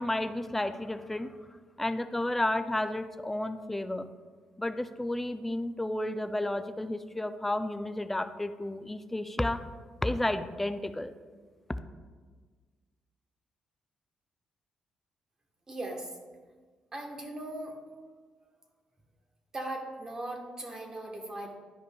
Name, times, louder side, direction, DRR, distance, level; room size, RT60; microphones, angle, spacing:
voice 1, 0.0-1.3 1.8-4.1 4.6-9.7 10.0-11.1, left 1 dB, 10° left, 9 dB, 0.3 m, -32 dB
voice 2, 15.7-16.1 16.9-17.8 19.5-21.6, right 1 dB, 25° right, 2 dB, 1.1 m, -38 dB
11.0 x 5.1 x 2.2 m, 1.5 s
cardioid pair, 120°, 2 cm